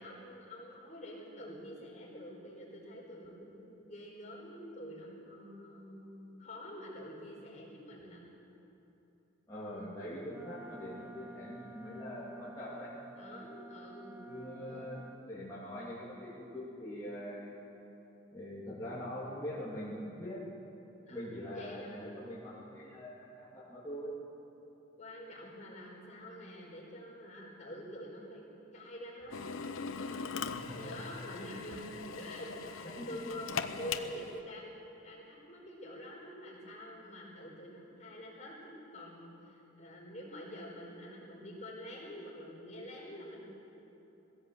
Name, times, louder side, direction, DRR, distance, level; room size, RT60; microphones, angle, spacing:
voice 1, 0.0-8.2 13.1-14.3 14.6-14.9 21.0-22.2 25.0-28.4 28.7-29.4 29.9-30.3 30.8-34.7 35.0-43.4, equal, 35° left, -3 dB, 4.8 m, -47 dB
voice 2, 9.5-12.9 14.2-17.6 18.3-20.4 21.1-24.2 30.5-30.9 31.4-31.5 33.0-33.2, equal, 15° left, -10 dB, 3.0 m, -43 dB
Wind instrument woodwind instrument, 10.3-15.2, right 1 dB, 10° right, 0.5 m, -51 dB
Drill, 29.3-34.4, left 5 dB, 85° left, 0.9 m, -40 dB
20.5 x 16.5 x 8.0 m, 3.0 s
head